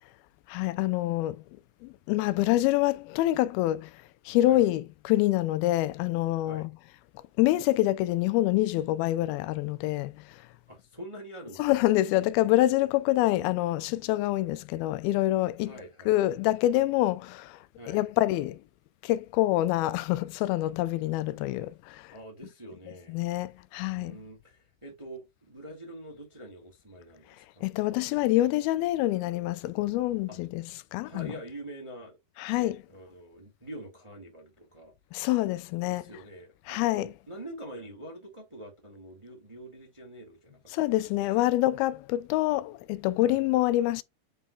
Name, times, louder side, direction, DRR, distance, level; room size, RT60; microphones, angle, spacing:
voice 1, 0.5-1.4 1.8-3.9 4.3-6.7 7.4-10.2 11.6-15.7 16.1-17.6 17.9-18.6 19.0-22.1 23.1-24.2 27.6-31.3 32.4-32.8 35.1-36.0 36.7-37.1 40.7-44.0, left 16 dB, 85° left, 2.5 m, -26 dB
voice 2, 10.7-11.9 15.6-16.1 17.8-18.0 22.1-23.2 23.9-27.7 30.3-30.4 31.0-32.2 32.5-34.9 35.9-40.8 43.2-43.4, right 1 dB, 15° right, 1.3 m, -45 dB
9.4 x 4.1 x 2.4 m
omnidirectional pair, 4.3 m